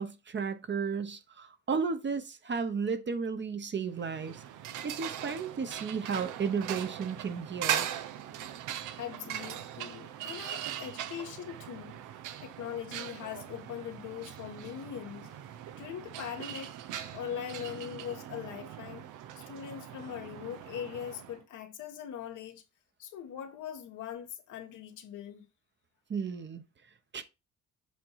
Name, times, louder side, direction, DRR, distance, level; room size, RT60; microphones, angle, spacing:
voice 1, 0.0-4.4 4.8-7.9 26.1-26.6 27.1-27.2, right 5 dB, 35° right, 1.0 m, -33 dB
sound 1, 4.0-21.4, right 10 dB, 90° right, 0.8 m, -40 dB
voice 2, 9.0-12.0 12.4-15.3 15.8-16.7 17.1-19.0 19.5-22.6 23.0-25.4, left 9 dB, 85° left, 1.5 m, -41 dB
7.5 x 2.9 x 5.6 m
cardioid pair, 90°, 30 cm